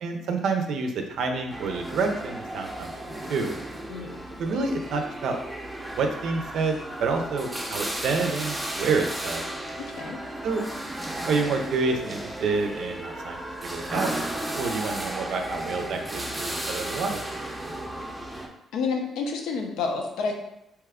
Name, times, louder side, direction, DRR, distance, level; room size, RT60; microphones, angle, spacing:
voice 1, 0.0-3.5 4.4-5.4 5.9-9.4 10.4-10.6 11.3-14.1 14.5-17.2, right 4 dB, 75° right, 5 dB, 0.5 m, -28 dB
sound 1, 1.5-18.5, right 1 dB, 10° right, 0.5 m, -34 dB
voice 2, 9.8-10.2 18.7-20.3, left 4 dB, 90° left, 2 dB, 0.5 m, -29 dB
2.9 x 2.3 x 3.5 m, 0.83 s
cardioid pair, 90°, 0 cm